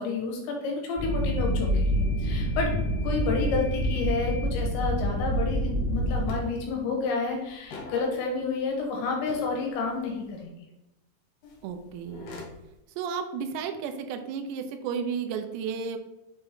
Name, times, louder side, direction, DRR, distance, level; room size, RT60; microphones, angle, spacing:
voice 1, 0.0-10.4, left 4 dB, 80° left, 1 dB, 3.2 m, -30 dB
sound 1, 1.0-6.4, equal, 35° left, 1.6 m, -27 dB
sound 2, 6.0-6.1 6.2-7.0 7.2-8.9 9.3-10.4 11.4-12.7, left 2 dB, 65° left, 3.1 m, -44 dB
voice 2, 11.6-12.4 13.0-16.0, right 6 dB, 80° right, 6 dB, 2.7 m, -33 dB
7.0 x 4.4 x 3.6 m, 0.93 s
omnidirectional pair, 5.4 m